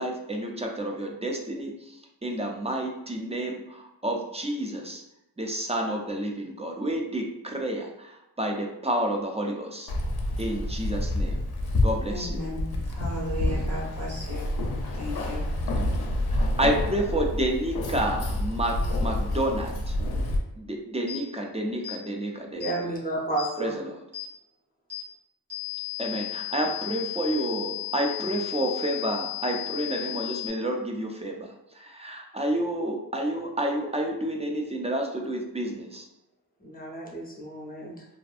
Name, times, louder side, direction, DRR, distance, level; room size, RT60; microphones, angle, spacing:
voice 1, 0.0-5.0 5.4-9.8 10.4-11.4 11.8-12.4 16.3-19.9 20.6-22.7 23.6-23.8 26.0-36.1, right 1 dB, 20° right, 1 dB, 0.3 m, -30 dB
Keys jangling, 9.9-20.4, left 1 dB, 70° left, 0.5 m, -28 dB
voice 2, 12.1-14.5 14.9-15.4, equal, 65° right, -8 dB, 1.2 m, -35 dB
sound 1, 21.1-21.2 21.8-22.0 22.6-22.8 23.4-23.5 24.1-24.3 24.9-25.1 25.5-30.5, left 16 dB, 90° right, 1.1 m, -34 dB
voice 3, 22.5-23.8 36.6-38.1, right 2 dB, 25° left, -2 dB, 0.6 m, -32 dB
2.5 x 2.4 x 2.3 m, 0.88 s
wide cardioid pair, 85°, 39 cm